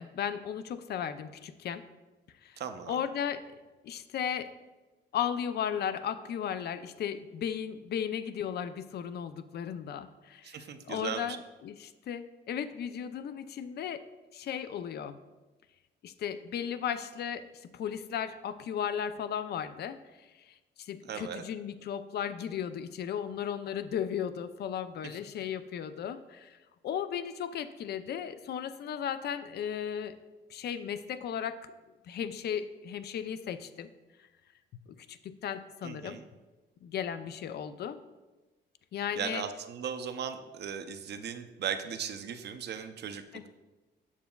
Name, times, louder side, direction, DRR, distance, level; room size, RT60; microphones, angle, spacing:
voice 1, 0.0-1.8 2.4-2.6 2.9-3.4 3.8-4.5 5.1-14.0 14.3-15.2 16.0-26.6 26.8-30.2 30.5-31.7 32.0-33.9 34.2-34.3 34.9-36.2 36.8-38.0 38.9-39.4 43.3-43.4, left 8 dB, 55° left, 12 dB, 0.4 m, -35 dB
voice 2, 2.6-3.0 10.4-11.4 21.1-21.4 25.0-25.1 35.8-36.3 39.2-43.2, right 7 dB, 60° right, 8 dB, 0.6 m, -37 dB
7.2 x 6.7 x 2.3 m, 1.2 s
cardioid pair, 90°, 20 cm